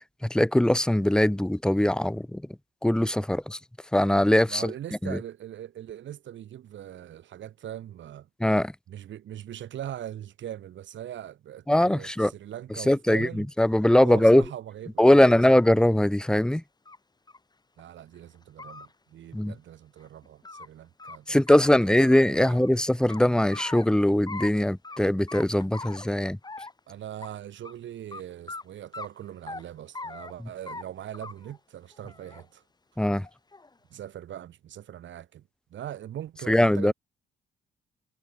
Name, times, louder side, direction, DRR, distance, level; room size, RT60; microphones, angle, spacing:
voice 1, 0.2-2.4 2.8-3.6 3.9-4.7 5.0-5.2 8.4-8.7 11.7-12.3 12.9-14.4 15.0-16.6 19.3-19.5 21.3-26.4 33.0-33.3 36.5-36.9, left 1 dB, 5° left, 0.7 m, -21 dB
voice 2, 4.5-8.3 8.9-13.5 14.0-15.4 17.8-22.6 26.9-32.6 33.9-35.4 35.7-36.9, right 11 dB, 70° right, 3.7 m, -41 dB
sound 1, 14.4-14.5 15.1-15.8 16.9-17.0 17.3-17.4 17.8-17.9 18.4-18.9 20.0-20.7 21.0-21.2 21.5-22.7 23.1-23.9 24.3-24.5 24.8-25.0 25.3-26.1 26.4-26.8 27.2-27.3 27.7-27.8 28.1-28.2 28.5-28.6 28.9-29.6 29.9-30.3 30.7-30.8 31.1-31.6 31.9-32.5 33.2-33.7, left 3 dB, 20° left, 2.8 m, -41 dB
cardioid pair, 90°, 20 cm